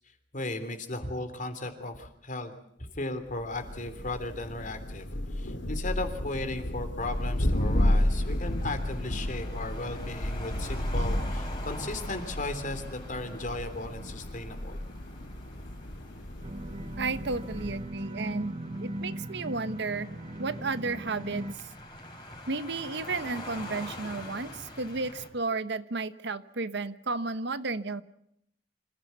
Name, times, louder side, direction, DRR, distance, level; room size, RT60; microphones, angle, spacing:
voice 1, 0.3-2.5 2.9-5.1 5.3-14.8, left 2 dB, 45° left, 8 dB, 3.3 m, -36 dB
Thunder, 3.4-18.0, left 1 dB, 80° left, 2.4 m, -32 dB
sound 1, 7.0-25.3, left 1 dB, 25° left, 5.2 m, -46 dB
sound 2, 16.4-21.6, right 1 dB, 35° right, 0.9 m, -38 dB
voice 2, 17.0-18.5 18.8-20.1 20.4-21.6 22.5-28.0, right 3 dB, 65° right, 13 dB, 1.1 m, -33 dB
27.0 x 16.0 x 8.3 m, 0.76 s
head